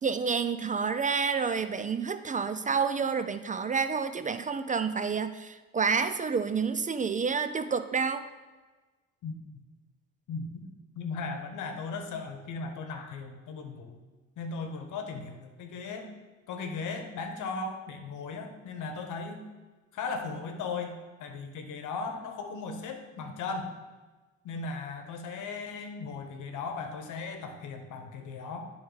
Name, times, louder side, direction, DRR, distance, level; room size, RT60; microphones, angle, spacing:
voice 1, 0.0-8.3, right 5 dB, 25° right, 11 dB, 0.4 m, -29 dB
voice 2, 10.3-10.6 11.0-14.0 14.4-16.1 16.5-19.4 19.9-23.7 24.4-28.6, left 4 dB, 80° left, 5 dB, 1.1 m, -37 dB
11.0 x 3.8 x 3.9 m, 1.3 s
cardioid pair, 90°, 30 cm